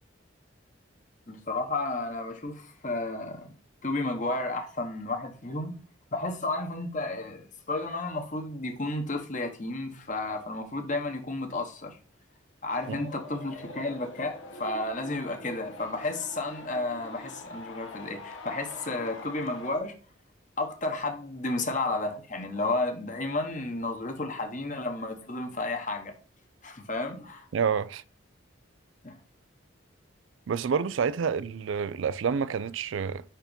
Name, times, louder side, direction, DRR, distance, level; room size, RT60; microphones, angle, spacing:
voice 1, 1.3-3.5 3.8-5.7 6.1-12.0 12.6-19.9 20.6-26.2 26.6-27.5 29.0-29.2, left 2 dB, 40° left, 1.1 m, -32 dB
sound 1, 12.7-19.8, left 2 dB, 80° left, 1.1 m, -44 dB
voice 2, 27.5-28.0 30.5-33.2, right 6 dB, 75° right, 0.4 m, -28 dB
5.9 x 4.5 x 5.1 m
head